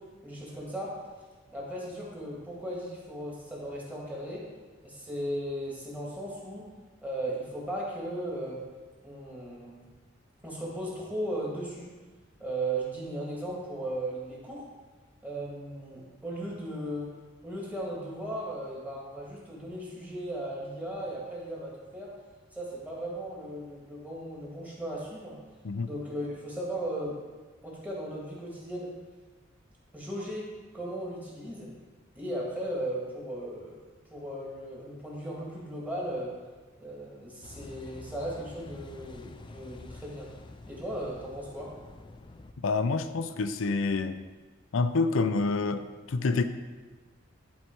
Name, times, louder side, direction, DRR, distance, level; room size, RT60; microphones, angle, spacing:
voice 1, 0.2-0.9 1.5-4.4 4.8-6.6 7.0-8.6 9.0-9.8 10.4-11.9 12.4-14.6 15.2-17.1 17.4-22.1 22.5-25.3 25.9-27.2 27.6-28.9 29.9-30.5 30.7-31.7 32.2-33.8 34.1-36.3 36.8-40.3 40.7-41.7, right 1 dB, 10° right, -5 dB, 1.9 m, -36 dB
Car passing by / Idling / Accelerating revving vroom, 37.4-42.5, left 2 dB, 25° left, 0.3 m, -48 dB
voice 2, 42.6-44.2 44.7-46.4, left 3 dB, 85° left, 11 dB, 0.5 m, -27 dB
11.0 x 4.2 x 4.6 m, 1.3 s
head